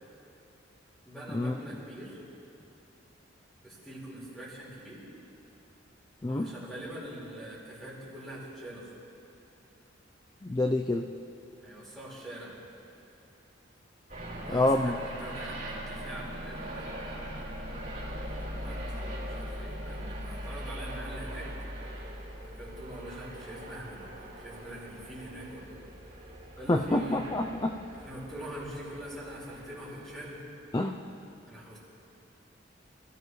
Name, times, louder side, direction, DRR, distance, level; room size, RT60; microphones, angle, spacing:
voice 1, 1.0-2.2 3.6-5.1 6.3-8.9 11.6-12.6 14.4-17.1 18.2-21.5 22.4-25.8 26.6-27.3 28.0-30.4 31.5-31.8, right 1 dB, ahead, -7 dB, 4.6 m, -44 dB
voice 2, 10.4-11.1 14.5-14.9 26.7-27.7 30.7-31.0, left 1 dB, 20° left, 4 dB, 0.4 m, -27 dB
sound 1, 14.1-30.3, equal, 40° right, 4.6 m, -41 dB
26.5 x 15.0 x 3.2 m, 2.8 s
head